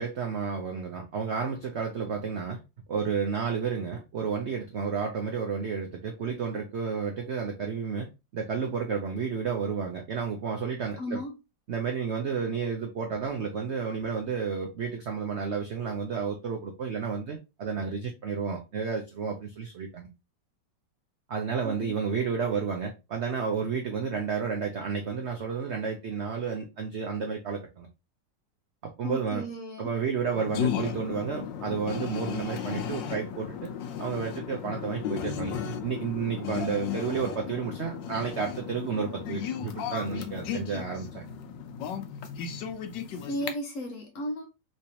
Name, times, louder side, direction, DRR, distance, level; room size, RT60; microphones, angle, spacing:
voice 1, 0.0-2.6 2.9-11.2 11.7-20.1 21.3-27.9 29.0-29.5 29.8-33.7 34.0-41.3, right 6 dB, 70° right, 0.6 m, -31 dB
voice 2, 11.0-11.4 21.6-22.0 29.0-29.9 43.3-44.5, equal, 55° left, 1.0 m, -35 dB
sound 1, 30.4-43.5, left 8 dB, 85° left, 1.3 m, -35 dB
3.3 x 3.1 x 2.7 m
omnidirectional pair, 1.9 m